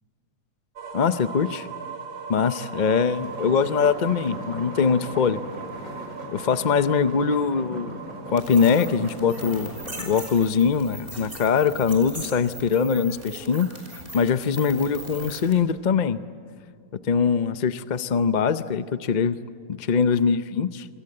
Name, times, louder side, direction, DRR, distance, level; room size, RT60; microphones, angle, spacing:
sound 1, 0.7-12.5, right 5 dB, 85° right, 2.9 m, -40 dB
voice 1, 0.9-1.7 2.3-5.4 6.3-8.0 8.3-16.2 17.0-19.4 19.7-20.9, left 6 dB, 50° left, 12 dB, 0.5 m, -22 dB
sound 2, 3.1-10.2, equal, 50° right, 6.3 m, -39 dB
sound 3, 8.4-15.6, right 1 dB, 30° right, 5.5 m, -39 dB
26.5 x 25.5 x 7.8 m, 2.1 s
omnidirectional pair, 1.8 m